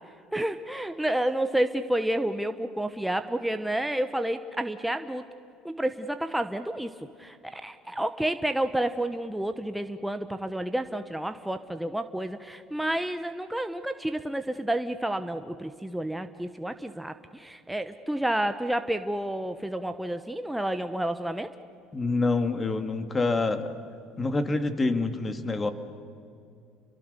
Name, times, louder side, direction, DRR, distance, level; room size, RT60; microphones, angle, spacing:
voice 1, 0.3-5.2 5.6-6.9 7.2-21.5, right 1 dB, 5° right, 8 dB, 1.1 m, -30 dB
voice 2, 21.9-23.7 24.2-25.7, left 3 dB, 25° left, 9 dB, 2.2 m, -26 dB
29.5 x 23.0 x 6.8 m, 2.5 s
supercardioid pair, 90°, 0 cm